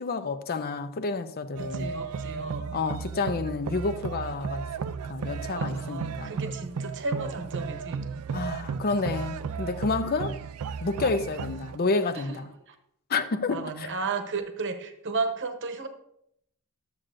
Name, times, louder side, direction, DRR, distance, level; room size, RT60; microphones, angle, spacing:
voice 1, 0.0-1.9 2.7-4.7 5.1-6.3 8.3-10.4 10.8-12.5 13.1-13.9, left 3 dB, 45° left, 0.5 m, -29 dB
sound 1, 1.5-11.8, right 5 dB, 75° right, 0.4 m, -34 dB
voice 2, 1.6-2.7 5.5-8.0 12.1-12.2 13.5-15.9, right 4 dB, 55° right, 0.9 m, -33 dB
12.0 x 7.5 x 2.6 m
head